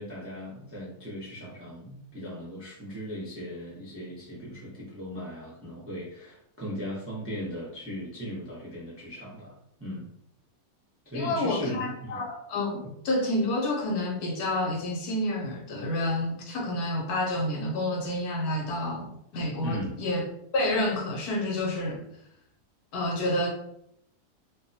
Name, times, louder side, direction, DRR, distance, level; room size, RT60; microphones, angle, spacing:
voice 1, 0.0-10.1 11.0-12.2 19.6-20.0, equal, 20° right, -7 dB, 0.3 m, -38 dB
voice 2, 11.1-20.2 20.5-22.0 22.9-23.5, left 1 dB, 75° left, 0 dB, 1.1 m, -29 dB
2.7 x 2.2 x 2.6 m, 0.74 s
omnidirectional pair, 1.7 m